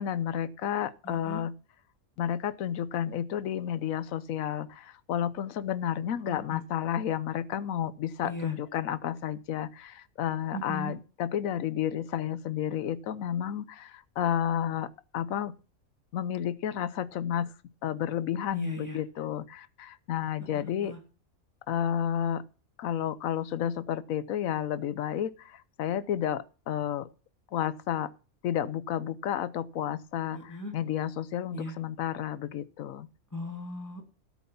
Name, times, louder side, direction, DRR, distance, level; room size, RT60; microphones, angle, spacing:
voice 1, 0.0-1.5 2.2-14.9 15.1-15.5 16.1-17.5 17.8-20.9 21.7-22.4 22.8-27.1 27.5-28.1 28.4-33.1, left 10 dB, 75° left, 1.1 m, -31 dB
voice 2, 1.0-1.4 6.3-6.6 8.2-8.5 10.5-11.0 18.5-19.0 20.5-21.0 30.3-30.7 31.5-31.7 33.3-34.0, left 1 dB, 10° left, 2.3 m, -38 dB
13.0 x 7.1 x 5.8 m
omnidirectional pair, 1.5 m